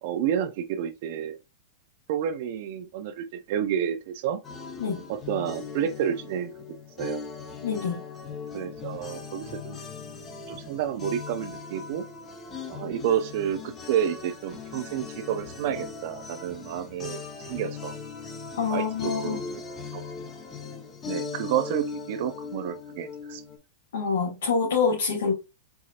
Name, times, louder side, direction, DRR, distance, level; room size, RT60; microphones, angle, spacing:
voice 1, 0.0-1.4 2.1-4.4 5.1-7.3 8.5-9.8 10.5-12.1 12.7-17.9 18.7-19.4 19.9-20.0 21.1-23.4, right 9 dB, 55° right, 0.5 m, -30 dB
sound 1, 4.4-23.6, left 5 dB, 20° left, 0.8 m, -39 dB
voice 2, 7.6-8.0 18.6-19.4 23.9-25.3, left 5 dB, 85° left, 1.5 m, -26 dB
4.7 x 2.8 x 2.4 m
supercardioid pair, 145°, 0 cm